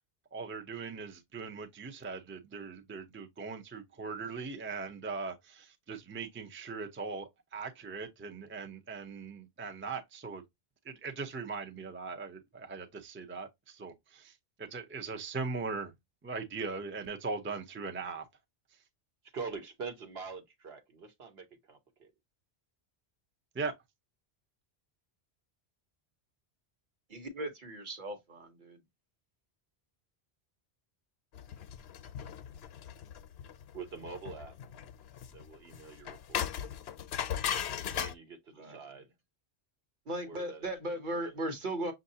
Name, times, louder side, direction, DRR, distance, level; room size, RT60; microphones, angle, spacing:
voice 1, 0.3-10.4 10.8-15.9 16.2-18.2 23.5-23.7, right 4 dB, 15° right, 0.5 m, -40 dB
voice 2, 19.3-22.1 33.7-34.6 35.3-36.7 37.9-39.1 40.2-41.3 41.8-41.9, right 5 dB, 70° right, 1.2 m, -45 dB
voice 3, 27.1-28.8 38.6-38.8 40.1-41.9, right 1 dB, 50° right, 1.2 m, -37 dB
sound 1, 31.3-38.1, left 9 dB, 75° left, 0.8 m, -38 dB
6.3 x 2.6 x 2.7 m
omnidirectional pair, 1.1 m